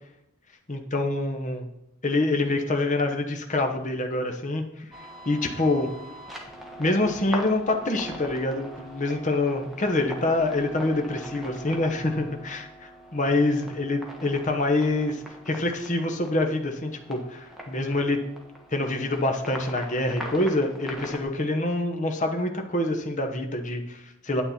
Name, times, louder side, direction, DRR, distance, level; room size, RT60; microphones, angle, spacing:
voice 1, 0.7-1.6 2.0-4.9 5.3-5.9 6.8-18.2 18.7-24.4, left 2 dB, 35° left, 4 dB, 1.0 m, -26 dB
sound 1, 4.9-21.2, equal, ahead, 1.3 m, -42 dB
9.3 x 8.6 x 4.3 m, 0.82 s
head